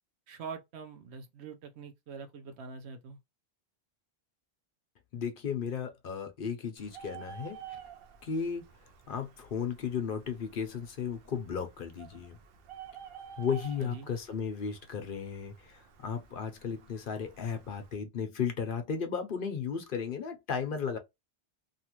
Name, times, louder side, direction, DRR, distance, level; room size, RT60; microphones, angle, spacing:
voice 1, 0.3-3.2 13.8-14.1, right 5 dB, 85° right, 1.0 m, -44 dB
voice 2, 5.1-7.8 8.2-8.7 9.1-12.4 13.4-21.0, left 6 dB, 60° left, 0.8 m, -35 dB
Bird, 6.8-18.0, right 8 dB, 65° right, 0.8 m, -51 dB
2.8 x 2.5 x 2.9 m
omnidirectional pair, 1.1 m